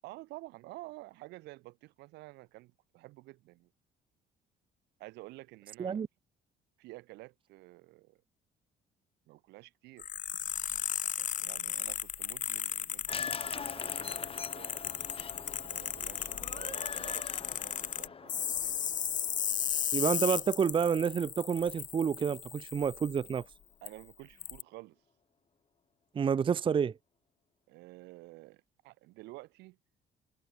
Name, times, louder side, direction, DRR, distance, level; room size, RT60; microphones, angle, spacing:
voice 1, 0.0-3.7 5.0-6.0 6.8-8.2 9.3-10.1 11.2-14.8 15.7-18.8 23.8-25.0 27.7-29.8, right 20 dB, 90° right, 7.5 m, -51 dB
sound 1, 10.0-23.4 23.9-24.0 24.4-24.6, left 9 dB, 50° left, 2.8 m, -36 dB
sound 2, 13.1-21.4 21.7-21.8, left 6 dB, 35° left, 7.5 m, -44 dB
voice 2, 19.9-23.5 26.1-26.9, right 7 dB, 30° right, 0.6 m, -29 dB
cardioid pair, 110°, 17 cm